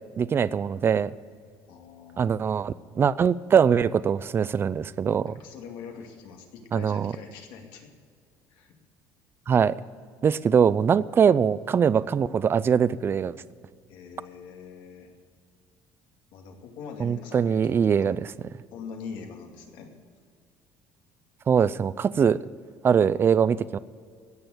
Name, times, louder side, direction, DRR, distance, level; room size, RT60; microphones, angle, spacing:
voice 1, 0.2-1.1 2.2-5.4 6.7-7.1 9.5-9.8 10.2-13.4 17.0-18.2 21.5-22.4 22.8-23.8, right 7 dB, 30° right, 18 dB, 0.4 m, -22 dB
voice 2, 1.7-2.6 5.2-7.9 8.5-8.7 13.9-15.1 16.3-18.1 18.7-19.9, left 6 dB, 80° left, 2 dB, 2.4 m, -43 dB
16.5 x 6.9 x 9.5 m, 2.1 s
cardioid pair, 125°, 8 cm